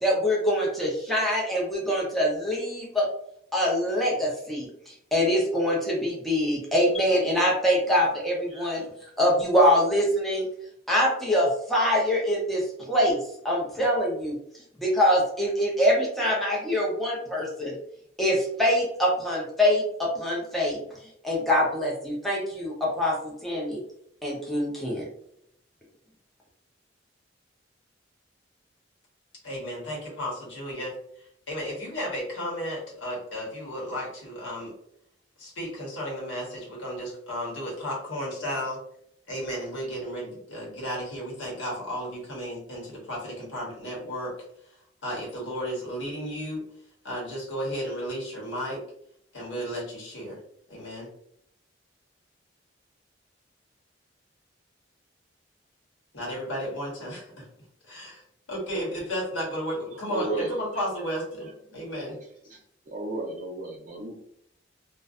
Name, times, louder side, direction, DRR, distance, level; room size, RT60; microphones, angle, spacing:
voice 1, 0.0-3.1 3.5-8.8 9.2-10.5 10.9-13.2 13.4-14.3 14.8-17.7 18.2-20.8 21.2-23.8 24.2-25.1, equal, ahead, -5 dB, 0.6 m, -24 dB
voice 2, 29.4-34.7 35.4-38.8 39.3-44.4 45.0-46.6 47.0-48.8 49.3-50.4 50.7-51.1 56.1-57.5 57.8-62.2, equal, 85° left, -4 dB, 1.1 m, -33 dB
voice 3, 60.1-60.5 62.9-64.2, right 2 dB, 40° right, -1 dB, 0.6 m, -32 dB
2.5 x 2.2 x 2.4 m, 0.71 s
head